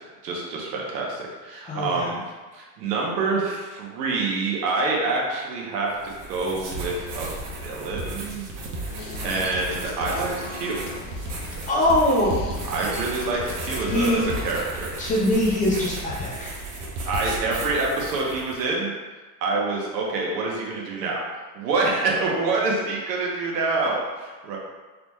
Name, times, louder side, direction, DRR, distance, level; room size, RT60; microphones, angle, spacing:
voice 1, 0.2-2.2 2.5-8.5 9.2-10.8 12.7-15.0 17.1-18.9 19.4-21.2 21.5-24.6, right 3 dB, 90° right, -2 dB, 1.1 m, -26 dB
voice 2, 1.6-2.1 11.7-12.4 12.9-13.0 13.9-14.3 15.0-16.6, left 1 dB, 20° left, -5 dB, 0.4 m, -22 dB
sound 1, 5.9-18.6, right 2 dB, 40° right, 0.8 m, -34 dB
sound 2, 7.0-14.9, left 3 dB, 65° left, 0.7 m, -40 dB
3.9 x 3.2 x 2.3 m, 1.3 s
supercardioid pair, 130°, 47 cm